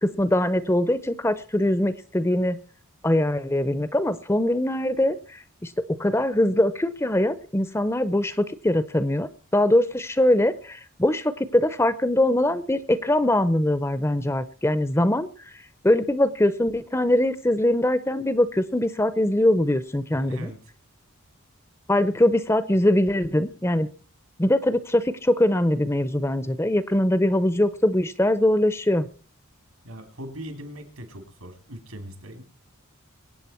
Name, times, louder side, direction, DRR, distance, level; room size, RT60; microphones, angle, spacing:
voice 1, 0.0-2.6 3.0-5.7 6.0-15.3 15.8-20.5 21.9-23.9 24.4-29.1, left 1 dB, 10° left, 15 dB, 0.6 m, -22 dB
voice 2, 20.1-20.6 29.8-32.4, equal, 80° right, 7 dB, 3.1 m, -39 dB
23.5 x 8.9 x 4.4 m, 0.38 s
head